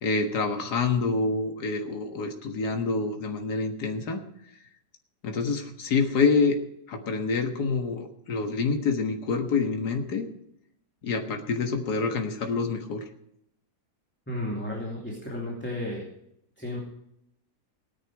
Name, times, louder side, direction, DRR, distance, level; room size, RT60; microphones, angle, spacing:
voice 1, 0.0-4.2 5.2-6.6 6.9-10.3 11.0-13.0, left 4 dB, 70° left, 4 dB, 2.0 m, -27 dB
voice 2, 14.3-16.1 16.6-16.8, left 1 dB, 5° left, -3 dB, 2.8 m, -33 dB
17.5 x 10.0 x 4.8 m, 0.75 s
omnidirectional pair, 1.8 m